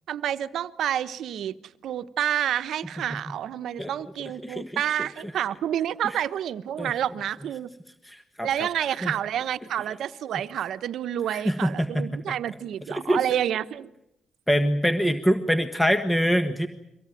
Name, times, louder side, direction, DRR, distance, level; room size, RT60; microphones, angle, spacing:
voice 1, 0.1-1.6 1.8-7.7 8.4-13.9, right 10 dB, 70° right, 12 dB, 1.0 m, -29 dB
voice 2, 4.4-5.0 6.0-6.2 6.8-6.9 8.1-8.5 9.0-9.1 11.3-12.2 12.9-13.2 14.5-16.7, equal, 5° left, 8 dB, 1.5 m, -25 dB
24.0 x 17.5 x 9.2 m, 0.86 s
cardioid pair, 90°, 0 cm